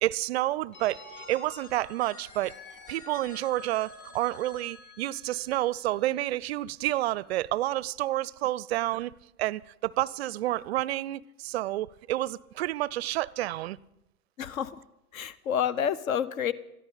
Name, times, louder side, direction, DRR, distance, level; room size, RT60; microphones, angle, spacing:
voice 1, 0.0-2.5 2.9-13.8, right 15 dB, 45° right, 0.4 m, -29 dB
Telephone, 0.7-6.5, left 3 dB, 40° left, 3.0 m, -49 dB
voice 2, 14.4-14.8 15.1-16.5, left 8 dB, 60° left, 0.9 m, -29 dB
22.0 x 14.0 x 4.0 m
figure-of-eight pair, 100°, 46 cm